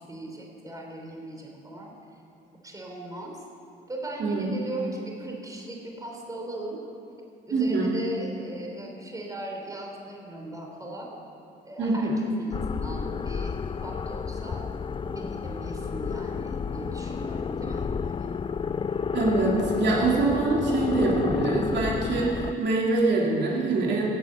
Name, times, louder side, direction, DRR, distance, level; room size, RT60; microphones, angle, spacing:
voice 1, 0.0-1.9 2.6-3.4 3.9-6.8 7.5-11.1 11.6-14.7 15.0-18.4, right 1 dB, 15° right, 0 dB, 3.2 m, -38 dB
voice 2, 7.5-7.9 11.8-12.2 19.1-24.1, right 3 dB, 65° right, -3 dB, 2.9 m, -24 dB
sound 1, 12.5-22.5, left 6 dB, 25° left, 0.3 m, -31 dB
16.5 x 8.8 x 7.9 m, 2.6 s
cardioid pair, 90°, 20 cm